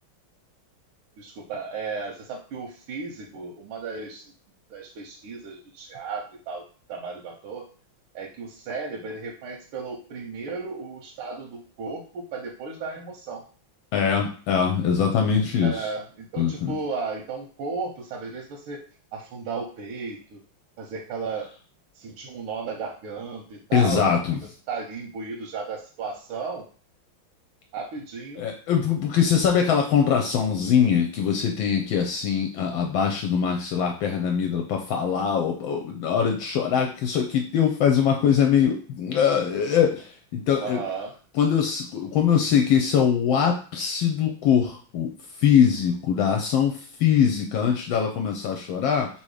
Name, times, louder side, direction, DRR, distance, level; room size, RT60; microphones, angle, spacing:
voice 1, 1.2-4.3 4.7-6.6 6.9-7.7 8.1-13.4 15.6-18.8 19.1-20.4 20.8-21.5 21.9-24.4 24.7-26.6 27.7-28.4 40.5-41.1, right 4 dB, 90° right, 0 dB, 1.6 m, -34 dB
voice 2, 13.9-15.9 16.4-16.7 23.7-24.4 28.4-40.8 41.4-45.1 45.4-49.1, left 7 dB, 75° left, 3 dB, 1.3 m, -22 dB
3.7 x 2.8 x 4.7 m, 0.41 s
omnidirectional pair, 2.3 m